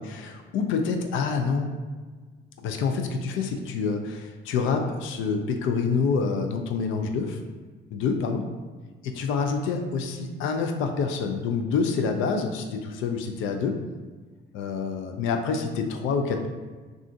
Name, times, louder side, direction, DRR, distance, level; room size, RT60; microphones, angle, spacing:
voice 1, 0.0-1.7 2.6-7.4 7.9-8.5 9.0-13.8 14.5-16.5, left 5 dB, 85° left, 5 dB, 0.4 m, -27 dB
2.5 x 2.4 x 3.7 m, 1.4 s
cardioid pair, 90°, 20 cm